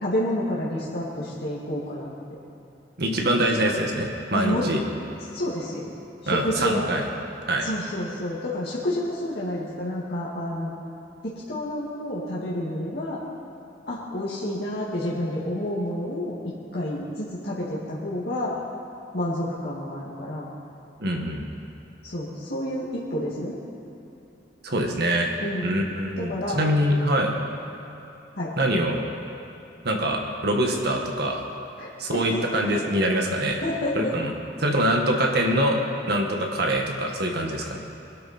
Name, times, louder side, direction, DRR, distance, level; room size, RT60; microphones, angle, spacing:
voice 1, 0.0-2.1 4.3-4.7 5.3-5.9 6.2-6.9 7.6-10.7 11.2-13.2 13.9-16.4 16.7-18.6 19.1-20.5 22.0-23.6 25.4-25.8 26.2-26.6 28.4-28.5 31.8-32.4 33.6-34.1, left 1 dB, 65° left, -7 dB, 2.2 m, -29 dB
voice 2, 3.0-4.8 6.3-7.1 7.5-7.7 21.0-21.5 24.6-25.3 25.6-27.3 28.6-29.0 29.8-31.4 32.0-33.6 34.0-34.3 34.6-35.8 36.1-37.8, right 1 dB, 65° right, 1 dB, 1.8 m, -24 dB
23.0 x 12.0 x 4.4 m, 2.9 s
head